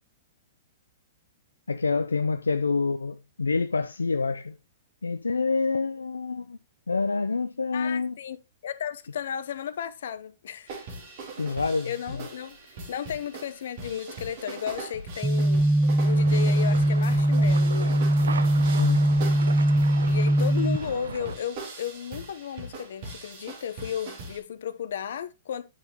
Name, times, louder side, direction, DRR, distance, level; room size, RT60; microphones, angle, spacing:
voice 1, 1.7-4.6 5.0-6.6 6.9-8.2 11.4-12.3 18.8-19.1, left 4 dB, 85° left, 0.5 m, -27 dB
voice 2, 7.7-8.4 8.6-10.7 11.8-12.6 12.9-15.6 16.0-18.1 20.1-25.6, left 8 dB, 65° left, 0.8 m, -34 dB
sound 1, 10.7-24.4, right 2 dB, 50° right, 2.7 m, -41 dB
sound 2, 15.2-20.8, right 1 dB, 5° right, 0.6 m, -21 dB
sound 3, 16.1-21.4, right 5 dB, 75° right, 0.8 m, -37 dB
9.0 x 5.7 x 2.9 m
hypercardioid pair, 115°, 0 cm